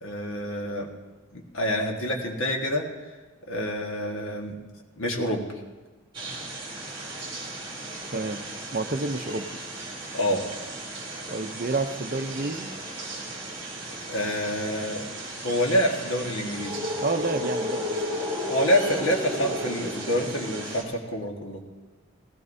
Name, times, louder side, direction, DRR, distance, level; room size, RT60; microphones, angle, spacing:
voice 1, 0.0-0.9 1.3-2.9 3.5-4.6 5.0-5.5 10.1-10.5 14.1-15.1 15.4-16.8 18.4-21.6, equal, 70° left, 2 dB, 1.6 m, -27 dB
sound 1, 6.1-20.8, equal, 25° right, 2.3 m, -34 dB
voice 2, 8.1-8.4 8.7-9.4 11.3-12.7 17.0-18.1, right 3 dB, 45° right, 8 dB, 0.6 m, -29 dB
18.0 x 15.5 x 2.7 m, 1.3 s
head